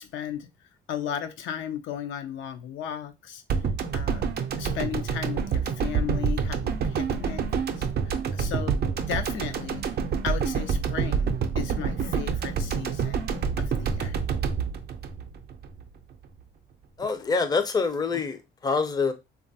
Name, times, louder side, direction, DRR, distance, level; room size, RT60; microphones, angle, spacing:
voice 1, 0.0-3.4 3.9-4.2 4.6-7.5 7.8-8.8 9.1-13.3 13.6-14.2, left 9 dB, 80° left, 0.5 m, -35 dB
sound 1, 3.5-15.8 16.1-16.2, right 6 dB, 55° right, 0.5 m, -27 dB
voice 2, 17.0-19.1, left 4 dB, 20° left, 0.4 m, -26 dB
3.1 x 2.3 x 2.6 m
cardioid pair, 90°, 20 cm